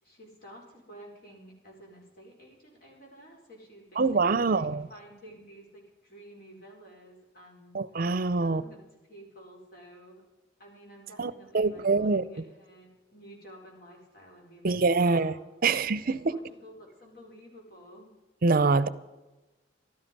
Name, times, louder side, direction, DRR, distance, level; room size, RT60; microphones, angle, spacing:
voice 1, 0.0-8.1 8.4-8.8 9.1-10.2 10.6-15.7 16.3-18.1, right 1 dB, 55° left, -1 dB, 4.8 m, -51 dB
voice 2, 4.0-4.9 7.7-8.6 11.2-12.2 14.6-15.3 15.6-16.3 18.4-18.9, right 4 dB, 50° right, 17 dB, 0.6 m, -25 dB
14.5 x 12.5 x 5.4 m, 1.1 s
head